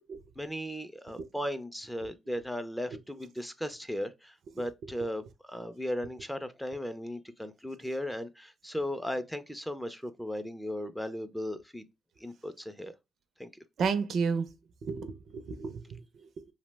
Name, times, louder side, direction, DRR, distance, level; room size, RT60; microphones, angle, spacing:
voice 1, 0.4-11.9 12.2-12.9 13.4-13.5, equal, 5° left, 0.3 m, -36 dB
voice 2, 4.6-4.9 13.8-14.5 14.8-16.5, right 5 dB, 65° right, 0.4 m, -33 dB
2.7 x 2.0 x 3.2 m
cardioid pair, 90°, 0 cm